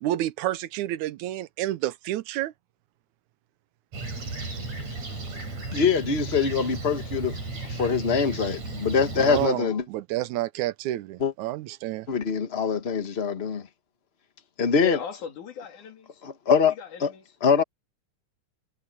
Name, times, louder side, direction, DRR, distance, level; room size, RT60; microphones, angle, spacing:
voice 1, 0.0-2.5 9.2-12.1, right 15 dB, 85° right, 2.1 m, -29 dB
Fixed-wing aircraft airplane, 3.9-9.5, right 3 dB, 65° right, 7.7 m, -34 dB
voice 2, 5.7-7.4 7.6-9.8 11.2-11.3 12.1-13.7 14.6-15.0 16.2-16.7 17.0-17.1 17.4-17.6, left 6 dB, 35° left, 1.0 m, -23 dB
voice 3, 14.8-16.2 16.6-17.2, left 7 dB, 90° left, 4.0 m, -38 dB
omnidirectional pair, 3.4 m